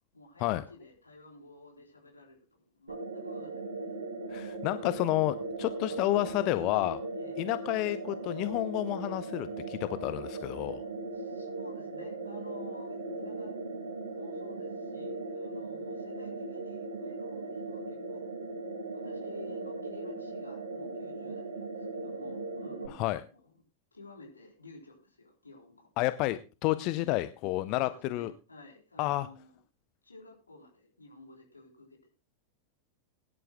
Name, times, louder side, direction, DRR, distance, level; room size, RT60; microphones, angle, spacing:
voice 1, 0.1-3.9 7.1-7.4 11.1-13.5 14.1-18.3 18.9-23.5 23.9-25.9 26.8-27.1 27.7-29.6 30.0-32.1, left 3 dB, 80° left, 0 dB, 4.1 m, -52 dB
sound 1, 2.9-22.9, right 3 dB, 65° right, 3.5 m, -38 dB
voice 2, 4.3-7.0 7.4-10.8 22.9-23.2 26.0-28.3 29.0-29.3, left 17 dB, 40° left, 13 dB, 0.6 m, -30 dB
21.5 x 11.0 x 2.3 m, 0.32 s
figure-of-eight pair, 90°, 0 cm